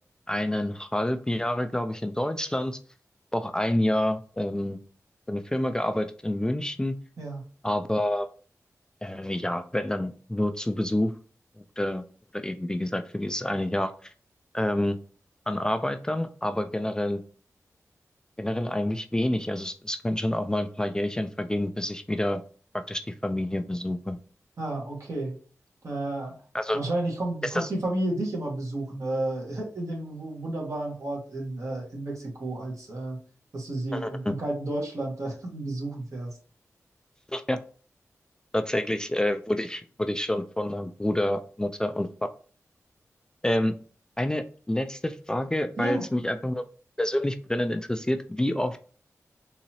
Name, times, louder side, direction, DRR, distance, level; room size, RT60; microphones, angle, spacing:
voice 1, 0.3-2.8 3.3-4.8 5.3-6.9 7.6-8.3 9.0-11.1 11.8-12.0 12.3-14.1 14.5-15.0 15.5-17.2 18.4-22.4 22.9-24.2 26.5-26.8 27.4-27.7 33.9-34.3 37.3-37.6 38.5-42.1 43.4-43.7 44.2-46.6 47.0-48.8, left 1 dB, 10° left, 8 dB, 0.3 m, -28 dB
voice 2, 24.6-25.3 25.8-26.4 26.7-33.2 33.5-36.4 45.8-46.0, right 2 dB, 65° right, -2 dB, 1.5 m, -31 dB
4.0 x 2.8 x 2.9 m, 0.41 s
wide cardioid pair, 65°, 6 cm